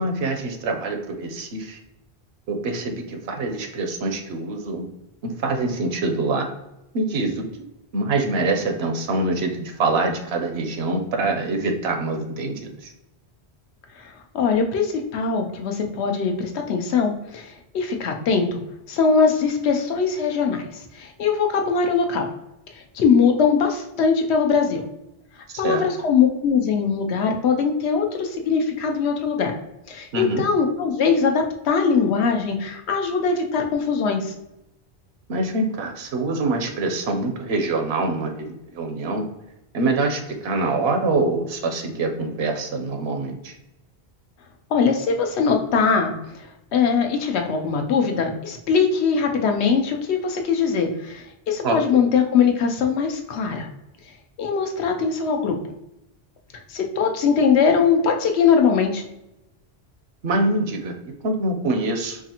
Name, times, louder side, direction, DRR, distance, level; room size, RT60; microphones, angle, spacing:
voice 1, 0.0-1.8 2.5-4.9 5.2-6.5 6.9-7.5 7.9-12.9 25.5-25.9 30.1-30.4 35.3-39.2 39.7-43.5 51.6-51.8 60.2-61.0 61.2-62.2, right 2 dB, 75° right, 4 dB, 0.9 m, -25 dB
voice 2, 14.3-18.6 18.9-20.6 21.0-22.3 22.9-24.8 25.6-29.5 29.9-34.3 44.7-46.1 46.7-53.7 54.4-55.6 56.7-59.0, left 5 dB, 85° left, 4 dB, 0.9 m, -21 dB
4.8 x 2.5 x 2.8 m, 0.88 s
omnidirectional pair, 1.1 m